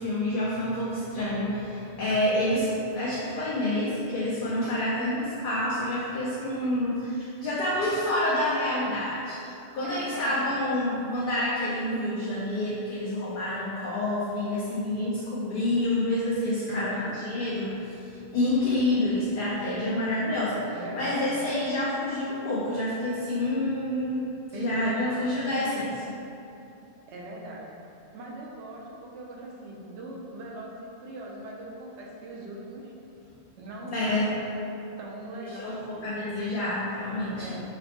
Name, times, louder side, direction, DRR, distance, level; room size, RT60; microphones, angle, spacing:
voice 1, 0.0-26.1 33.9-34.3 35.6-37.5, left 1 dB, 60° left, -8 dB, 0.6 m, -28 dB
voice 2, 9.8-10.4 16.7-17.2 20.7-21.2 24.5-25.0 27.1-27.7 28.1-32.9 33.6-34.6 35.0-36.1 37.4-37.6, right 1 dB, 70° right, -2 dB, 0.8 m, -40 dB
4.1 x 2.0 x 2.8 m, 2.8 s
omnidirectional pair, 1.2 m